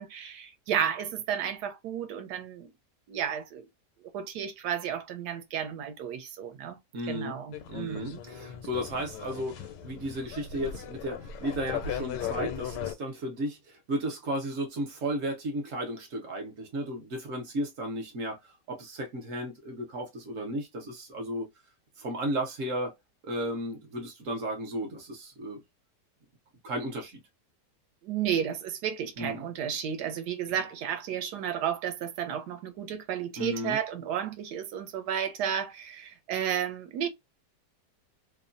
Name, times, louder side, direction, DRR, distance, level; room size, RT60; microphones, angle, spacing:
voice 1, 0.0-2.7 3.1-3.7 4.0-6.8 7.1-8.2 28.0-37.1, right 9 dB, 80° right, 1.2 m, -32 dB
voice 2, 6.9-7.3 7.7-21.5 22.0-22.9 23.2-25.6 26.6-27.2 29.2-29.4 33.4-33.8, equal, 60° right, 0.9 m, -34 dB
sound 1, 7.5-12.9, left 8 dB, 90° left, 1.2 m, -37 dB
2.9 x 2.1 x 2.4 m
omnidirectional pair, 1.8 m